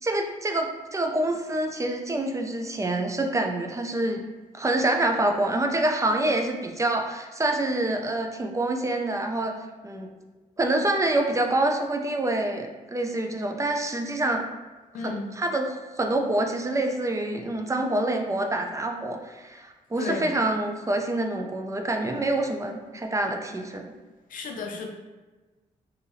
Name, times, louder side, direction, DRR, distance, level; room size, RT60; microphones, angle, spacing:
voice 1, 0.0-4.2 4.5-9.5 9.8-10.1 10.6-14.4 15.0-23.9, right 2 dB, 20° right, 3 dB, 0.5 m, -26 dB
voice 2, 14.9-15.3 20.0-20.3 24.3-24.9, left 4 dB, 70° left, 2 dB, 0.5 m, -33 dB
2.8 x 2.6 x 2.7 m, 1.2 s
cardioid pair, 65°, 15 cm